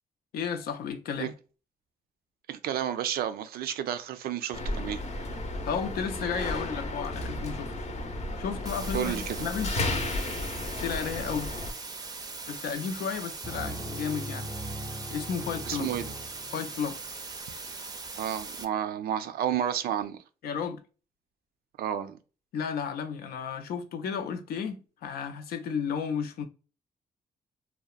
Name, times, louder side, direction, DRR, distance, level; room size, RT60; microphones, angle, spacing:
voice 1, 0.3-1.3 5.6-7.7 8.4-9.7 10.8-11.5 12.5-14.5 15.1-15.9 16.5-17.0 20.4-20.8 22.5-26.5, left 6 dB, 90° left, 0.5 m, -33 dB
voice 2, 2.5-5.0 8.9-9.5 15.7-16.1 18.2-20.2 21.8-22.2, right 10 dB, 85° right, 0.4 m, -31 dB
sound 1, 4.5-11.7, left 2 dB, 45° left, 0.6 m, -33 dB
sound 2, 8.7-18.7, right 4 dB, 25° right, 0.4 m, -40 dB
sound 3, 13.4-17.0, right 1 dB, 10° left, 0.8 m, -40 dB
2.8 x 2.1 x 2.2 m
cardioid pair, 90°, 15 cm